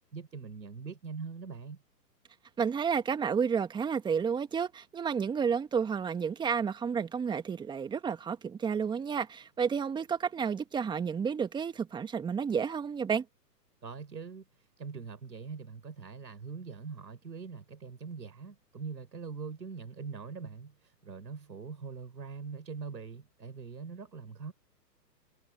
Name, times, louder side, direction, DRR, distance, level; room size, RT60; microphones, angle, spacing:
voice 1, 0.1-1.8 13.8-14.4 14.8-24.5, right 5 dB, 85° right, 5.3 m, -42 dB
voice 2, 2.6-13.3, right 6 dB, 10° right, 1.7 m, -31 dB
hypercardioid pair, 135°, 50 cm